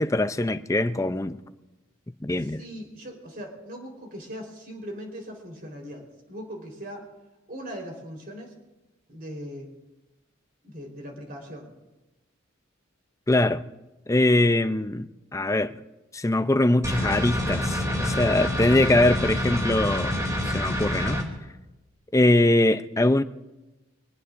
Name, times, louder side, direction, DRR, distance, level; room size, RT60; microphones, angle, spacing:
voice 1, 0.0-1.4 2.2-2.6 13.3-13.7 14.1-15.8 16.1-20.1 20.4-21.2 22.1-23.2, left 1 dB, 15° left, 0.5 m, -22 dB
voice 2, 2.4-7.0 7.5-8.5 9.1-9.7 10.6-11.7, equal, 45° right, 4.1 m, -39 dB
sound 1, 16.8-21.2, left 1 dB, 15° right, 2.8 m, -27 dB
25.0 x 19.0 x 2.6 m
head